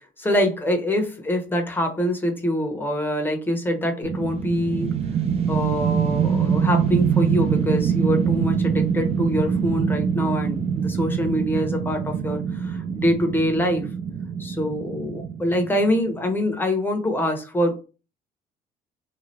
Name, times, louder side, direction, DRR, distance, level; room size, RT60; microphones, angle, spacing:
voice 1, 0.2-4.9 5.5-13.9 14.4-17.8, equal, 10° left, 4 dB, 0.8 m, -24 dB
sound 1, 4.0-16.2, right 7 dB, 35° right, 0.5 m, -24 dB
3.1 x 2.3 x 2.6 m, 0.32 s
cardioid pair, 110°, 17 cm